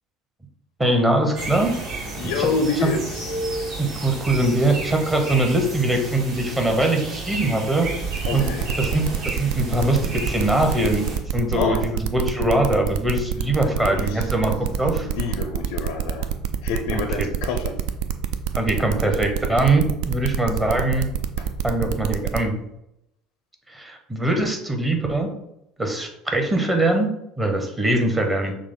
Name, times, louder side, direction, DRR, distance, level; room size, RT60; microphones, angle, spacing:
voice 1, 0.8-1.7 2.2-2.5 2.8-2.9 3.8-7.9 8.3-8.5 8.8-11.1 11.3-15.1 16.9-17.3 18.5-21.1 21.6-22.6 23.7-25.3 25.8-27.1 27.4-28.5, right 1 dB, 15° right, 3 dB, 1.0 m, -22 dB
sound 1, 1.4-11.2, right 2 dB, 50° right, 1.4 m, -32 dB
voice 2, 2.2-3.4 8.3-8.8 11.5-11.9 13.6-16.3 16.6-17.8 21.4-21.5, left 4 dB, 65° left, 5 dB, 0.4 m, -28 dB
sound 2, 8.2-22.4, right 9 dB, 65° right, 0.3 m, -25 dB
6.1 x 2.0 x 3.9 m, 0.83 s
figure-of-eight pair, 65°, 0 cm